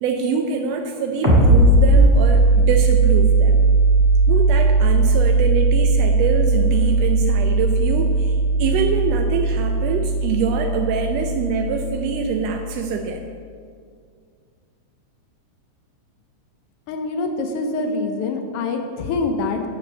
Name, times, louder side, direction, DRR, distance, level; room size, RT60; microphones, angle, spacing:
voice 1, 0.0-3.7 4.3-13.3, right 5 dB, 80° right, 3 dB, 1.5 m, -25 dB
sound 1, 1.2-12.6, right 3 dB, 15° right, 0.7 m, -17 dB
voice 2, 16.9-19.7, left 3 dB, 80° left, 5 dB, 1.3 m, -25 dB
8.6 x 5.3 x 6.2 m, 2.1 s
omnidirectional pair, 3.4 m